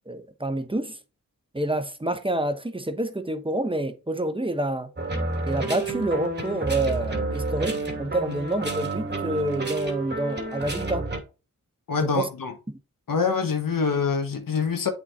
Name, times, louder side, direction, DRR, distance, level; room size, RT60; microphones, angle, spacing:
voice 1, 0.1-1.0 1.5-4.9 5.5-11.1 12.0-12.3 12.7-12.8, right 1 dB, 15° right, 1.0 m, -28 dB
sound 1, 5.0-11.2, right 3 dB, 30° right, 2.5 m, -30 dB
voice 2, 11.9-12.5 13.1-14.9, left 5 dB, 80° left, 1.3 m, -25 dB
8.1 x 4.3 x 4.1 m
cardioid pair, 45°, 33 cm